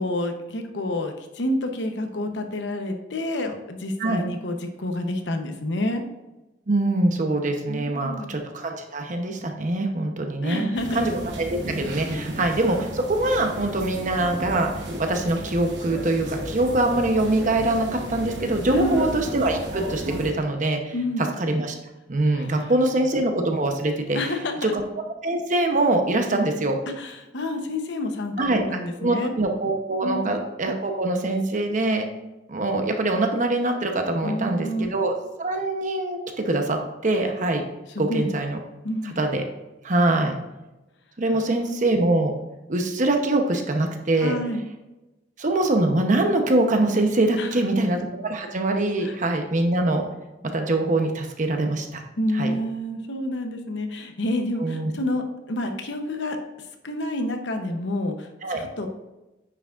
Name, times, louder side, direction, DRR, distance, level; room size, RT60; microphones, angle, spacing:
voice 1, 0.0-6.0 7.7-8.3 10.4-11.0 18.7-19.0 20.9-21.2 22.3-22.7 24.1-24.7 27.0-29.3 30.0-30.4 34.2-34.9 37.9-38.3 38.8-39.2 41.3-41.4 44.2-44.7 47.4-47.8 49.0-49.1 52.2-56.4 56.8-58.9, left 1 dB, 75° left, 5 dB, 0.9 m, -29 dB
voice 2, 6.7-10.6 10.9-14.7 15.0-20.9 21.4-21.7 22.1-24.2 24.6-24.8 25.2-26.8 28.4-28.6 29.0-32.0 32.5-37.6 38.0-38.6 39.0-39.4 39.8-40.3 41.2-42.3 42.7-44.3 45.4-50.0 50.5-52.0 52.4-52.5 54.6-54.9 58.4-58.6, right 2 dB, 45° right, 4 dB, 0.9 m, -23 dB
sound 1, 10.7-20.3, equal, 80° right, 1.2 m, -33 dB
9.3 x 6.0 x 2.5 m, 1.0 s
head